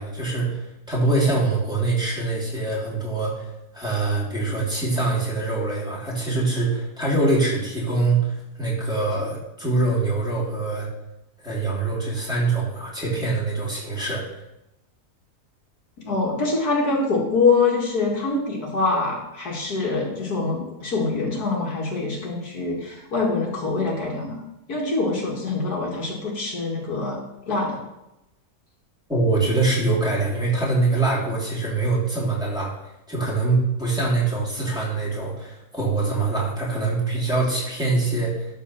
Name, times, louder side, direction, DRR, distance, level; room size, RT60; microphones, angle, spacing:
voice 1, 0.0-3.5 3.7-10.9 11.4-14.3 29.1-32.7 33.1-38.5, right 3 dB, 5° right, -7 dB, 3.2 m, -24 dB
voice 2, 16.0-24.4 24.7-27.2 27.5-27.8, left 3 dB, 75° left, -2 dB, 2.4 m, -24 dB
12.5 x 4.6 x 5.8 m, 0.90 s
omnidirectional pair, 1.7 m